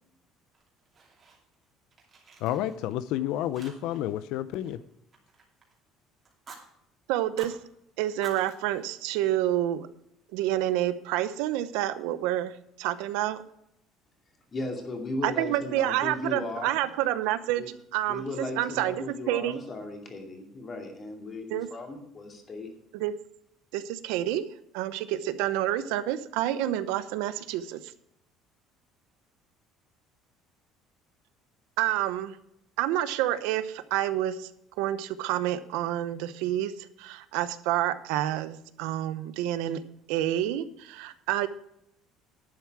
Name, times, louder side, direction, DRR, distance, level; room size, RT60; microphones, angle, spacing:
Fire, 0.5-1.6 1.9-3.1 3.5-4.1 4.4-5.8 6.2-6.6 7.2-7.6 8.1-9.6, right 4 dB, 25° right, 2.7 m, -51 dB
voice 1, 2.4-4.8, left 12 dB, 65° left, 14 dB, 0.6 m, -30 dB
voice 2, 7.1-7.6 8.0-9.9 10.3-13.4 15.2-17.6 17.9-19.6 21.5-21.7 22.9-23.1 23.7-24.4 24.7-27.8 31.8-32.4 32.8-34.5 34.8-39.8 40.1-41.5, right 13 dB, 90° right, 13 dB, 0.8 m, -28 dB
voice 3, 14.5-16.8 17.6-17.7 18.1-22.7, left 2 dB, 25° left, 2 dB, 2.5 m, -36 dB
11.0 x 9.3 x 4.7 m, 0.78 s
cardioid pair, 165°, 0 cm